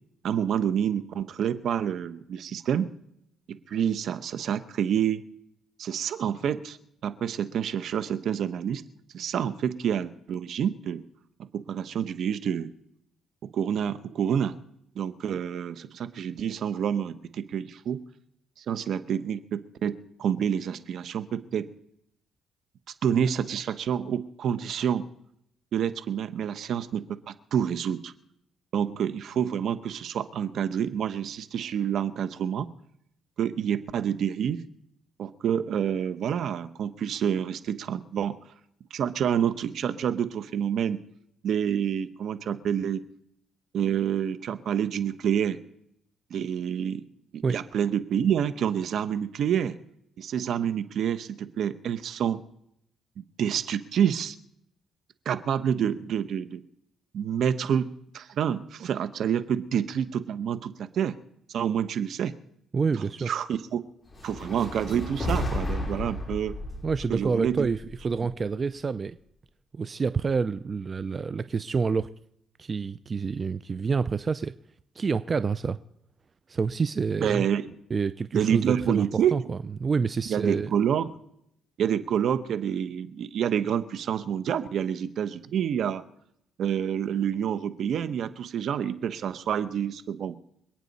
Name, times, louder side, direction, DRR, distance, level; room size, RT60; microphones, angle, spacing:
voice 1, 0.2-2.9 3.5-5.2 5.8-6.8 7.0-8.8 9.1-11.0 11.4-12.7 13.4-14.6 14.9-18.0 18.6-21.7 23.0-25.1 25.7-28.1 28.7-32.7 33.4-34.6 35.2-38.4 38.9-41.0 41.4-43.0 43.7-45.6 46.3-47.0 47.3-49.8 50.2-52.4 53.4-54.3 55.2-56.6 57.1-61.1 61.5-62.3 63.2-63.8 64.2-66.5 67.1-67.7 77.2-77.7 78.3-79.4 80.3-81.1 81.8-86.0 86.6-90.4, right 8 dB, 70° right, 13 dB, 1.0 m, -28 dB
voice 2, 62.7-63.3 66.8-69.2 69.7-72.1 72.6-74.5 75.0-75.8 76.5-77.4 77.9-79.1 79.3-80.7, right 5 dB, 35° right, 14 dB, 0.5 m, -28 dB
sound 1, 64.1-68.4, left 1 dB, 20° left, 3.7 m, -33 dB
26.5 x 9.1 x 4.2 m, 0.74 s
cardioid pair, 90°, 0 cm